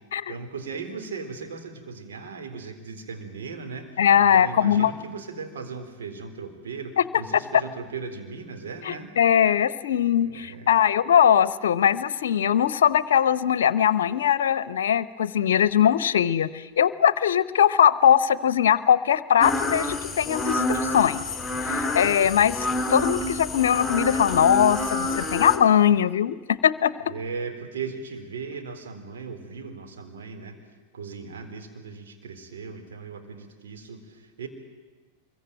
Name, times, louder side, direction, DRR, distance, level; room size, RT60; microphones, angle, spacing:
voice 1, 0.3-9.1 10.1-10.8 27.0-30.6 30.9-34.5, right 5 dB, 60° right, 5 dB, 3.8 m, -37 dB
voice 2, 4.0-4.9 7.0-7.1 8.9-21.2 21.7-22.5 22.9-26.9, left 9 dB, 60° left, 17 dB, 0.9 m, -21 dB
sound 1, 19.4-25.6, left 2 dB, 5° left, 4.0 m, -28 dB
25.0 x 22.5 x 9.1 m, 1.3 s
figure-of-eight pair, 90°, 0 cm